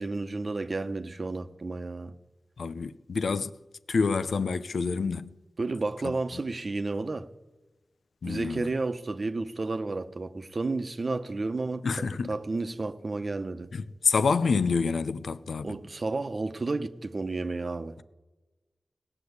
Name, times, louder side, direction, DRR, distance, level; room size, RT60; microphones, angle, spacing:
voice 1, 0.0-2.1 5.6-7.3 8.2-13.7 15.6-17.9, right 3 dB, 45° right, 1.0 m, -32 dB
voice 2, 2.6-3.5 3.9-5.3 8.2-8.7 11.8-12.3 13.7-15.7, left 4 dB, 90° left, 0.6 m, -27 dB
17.5 x 9.8 x 8.2 m
wide cardioid pair, 80°, 0 cm